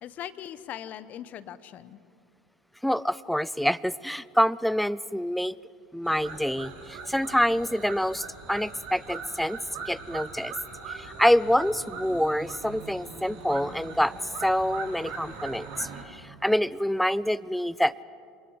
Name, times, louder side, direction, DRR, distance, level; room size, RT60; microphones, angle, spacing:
voice 1, 0.0-2.0, left 10 dB, 45° left, 15 dB, 1.1 m, -40 dB
voice 2, 2.8-5.6 5.9-9.6 9.9-10.5 10.9-14.1 14.4-18.0, equal, ahead, 20 dB, 0.5 m, -26 dB
sound 1, 6.0-16.0, right 5 dB, 60° right, 3.7 m, -41 dB
26.5 x 20.5 x 8.1 m, 2.4 s
hypercardioid pair, 75°, 4 cm